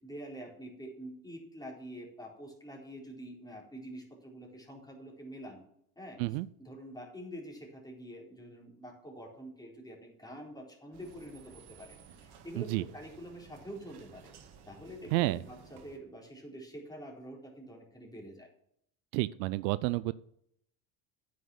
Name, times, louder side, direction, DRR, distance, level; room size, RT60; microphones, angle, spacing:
voice 1, 0.0-5.6 6.0-6.2 6.6-14.3 14.7-18.5, equal, 10° left, -1 dB, 4.0 m, -46 dB
sound 1, 10.9-16.0, right 6 dB, 50° right, 1.8 m, -56 dB
voice 2, 15.1-15.4 19.1-20.1, right 19 dB, 75° right, 17 dB, 0.6 m, -30 dB
9.4 x 6.3 x 7.2 m, 0.71 s
hypercardioid pair, 75°, 49 cm